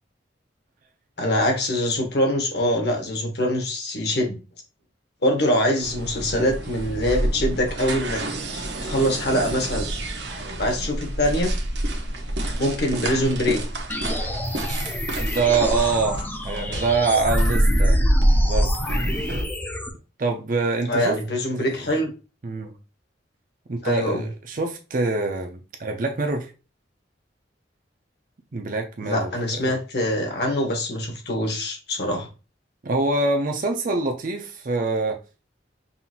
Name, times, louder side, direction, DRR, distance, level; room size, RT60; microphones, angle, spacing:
voice 1, 1.2-4.4 5.2-8.2 8.5-9.9 10.6-11.5 12.6-13.6 20.9-22.1 23.8-24.3 29.0-32.3, left 1 dB, 60° left, 1.2 m, -24 dB
sound 1, 5.8-19.4, right 1 dB, 70° right, 0.9 m, -25 dB
sound 2, 13.9-19.9, left 1 dB, 10° left, 0.5 m, -30 dB
voice 2, 15.2-18.0 18.4-18.8 20.2-21.2 21.6-21.8 22.4-22.7 23.7-26.5 28.5-29.3 29.6-29.8 32.8-35.2, right 3 dB, 45° right, 0.5 m, -25 dB
5.5 x 2.6 x 2.9 m
head